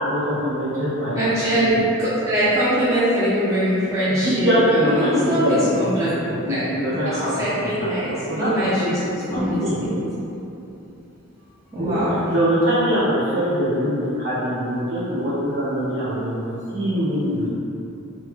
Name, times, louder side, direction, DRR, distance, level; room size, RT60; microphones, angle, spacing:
voice 1, 0.0-1.2 1.5-1.8 4.1-5.6 6.0-6.1 6.5-7.9 8.3-8.9 9.3-9.8 11.8-12.0 12.3-17.5, equal, 75° right, -12 dB, 1.1 m, -23 dB
voice 2, 1.2-9.0 9.3-10.0 11.7-12.2, equal, 15° right, -12 dB, 0.5 m, -23 dB
3.1 x 2.4 x 2.2 m, 2.8 s
head